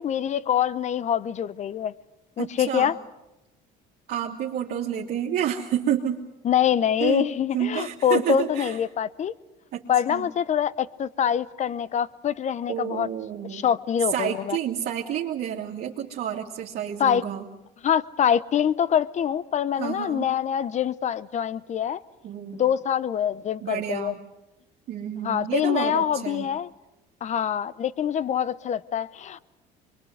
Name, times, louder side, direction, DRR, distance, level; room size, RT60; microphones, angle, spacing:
voice 1, 0.0-1.9 2.4-2.9 6.4-9.3 9.9-13.1 13.5-14.6 17.0-17.2 17.8-22.0 22.5-24.1 25.2-26.7 27.2-29.4, left 9 dB, 40° left, 18 dB, 0.8 m, -25 dB
voice 2, 2.4-2.9 4.1-6.2 7.0-7.3 7.5-8.8 9.7-9.8 10.1-10.3 12.7-13.7 14.1-17.4 19.8-20.3 22.2-22.6 23.6-24.2 24.9-26.5, right 10 dB, 60° right, -3 dB, 2.4 m, -29 dB
25.0 x 22.5 x 8.0 m, 0.98 s
cardioid pair, 115°, 18 cm